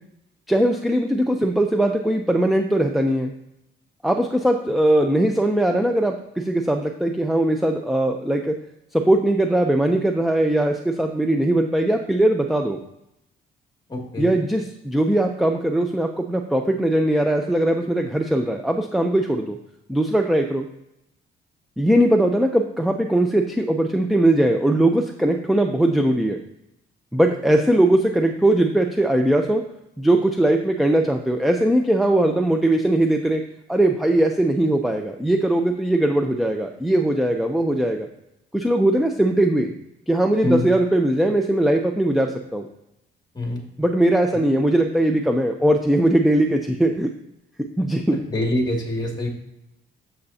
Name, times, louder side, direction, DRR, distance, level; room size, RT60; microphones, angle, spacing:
voice 1, 0.5-3.3 4.0-8.6 8.9-12.8 14.2-19.6 19.9-20.7 21.8-26.4 27.1-29.6 30.0-33.4 33.7-38.1 38.5-39.7 40.1-42.7 43.8-47.1 47.8-48.2, right 1 dB, ahead, 4 dB, 0.7 m, -20 dB
voice 2, 13.9-14.3 40.4-40.7 43.3-43.6 48.1-49.3, left 1 dB, 20° left, 0 dB, 2.5 m, -24 dB
9.4 x 7.6 x 2.8 m, 0.84 s
cardioid pair, 90°, 20 cm